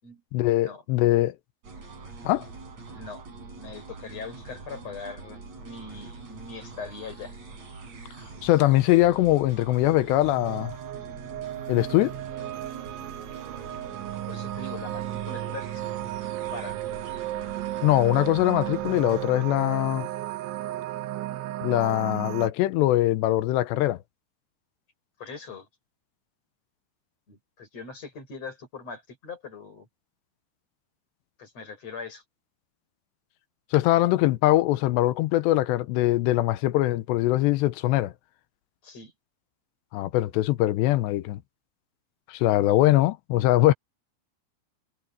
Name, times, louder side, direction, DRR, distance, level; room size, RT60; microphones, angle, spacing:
voice 1, 0.3-1.3 2.2-2.5 8.4-10.7 11.7-12.1 17.8-20.1 21.6-24.0 33.7-38.1 39.9-41.4 42.3-43.7, left 16 dB, 80° left, 2.8 m, -22 dB
sound 1, 1.6-19.3, right 3 dB, 35° right, 6.8 m, -44 dB
voice 2, 3.6-7.3 14.3-15.8 16.5-17.2 25.2-25.7 27.3-29.9 31.4-32.2 38.8-39.1, left 4 dB, 35° left, 6.8 m, -41 dB
sound 2, 10.2-22.5, right 14 dB, 80° right, 3.4 m, -34 dB
omnidirectional pair, 5.4 m